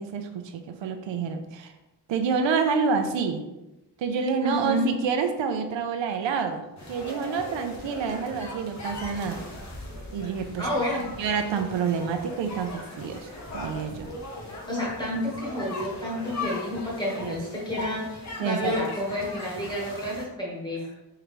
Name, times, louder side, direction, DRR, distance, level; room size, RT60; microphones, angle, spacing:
voice 1, 0.0-1.7 2.1-3.4 4.0-6.6 6.9-9.4 10.1-10.7 11.2-14.1 17.2-17.4 18.4-18.7, right 5 dB, 85° right, 6 dB, 0.6 m, -28 dB
voice 2, 4.4-4.9 10.6-11.0 14.7-20.9, left 1 dB, 10° left, -4 dB, 1.3 m, -30 dB
sound 1, 6.8-20.2, left 2 dB, 40° left, 0.9 m, -39 dB
4.5 x 3.8 x 3.1 m, 0.96 s
wide cardioid pair, 170°, 43 cm